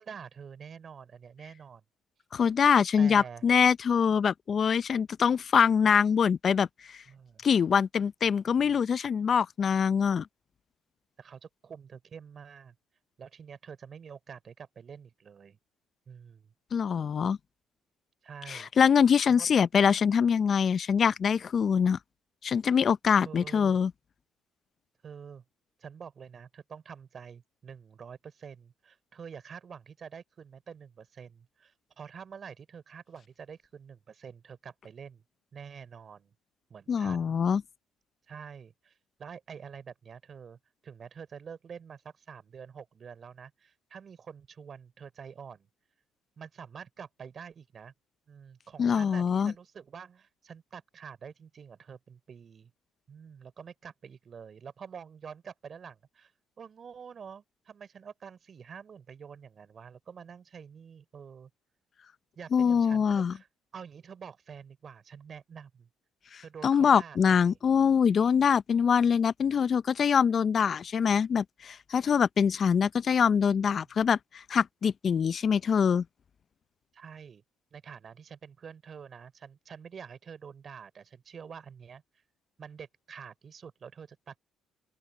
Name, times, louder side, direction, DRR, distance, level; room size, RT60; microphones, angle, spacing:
voice 1, 0.0-1.8 3.0-3.4 7.1-7.5 11.2-12.7 13.2-15.6 16.1-16.5 18.2-18.7 19.3-19.5 23.2-23.8 25.0-25.4 25.8-35.2 35.5-36.3 36.7-37.4 38.3-45.7 46.4-47.9 48.3-52.7 53.1-56.3 56.6-61.5 62.3-63.5 63.7-65.9 66.4-67.6 76.9-77.4 77.7-82.0 82.6-84.4, right 7 dB, 50° right, 3.3 m, -47 dB
voice 2, 2.3-7.0 7.4-10.3 16.7-17.4 18.5-22.0 22.4-23.9 36.9-37.6 48.8-49.5 62.5-63.4 66.3-76.0, left 7 dB, 50° left, 0.6 m, -24 dB
open air
supercardioid pair, 65°, 0 cm